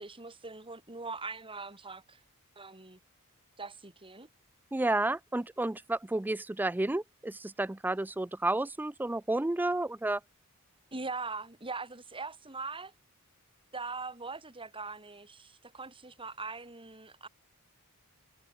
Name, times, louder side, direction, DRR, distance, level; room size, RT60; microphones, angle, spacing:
voice 1, 0.0-2.2 2.6-3.0 3.6-4.3 10.9-12.9 13.7-17.3, right 4 dB, 25° right, 4.0 m, -41 dB
voice 2, 4.7-10.2, right 2 dB, 10° right, 0.4 m, -31 dB
head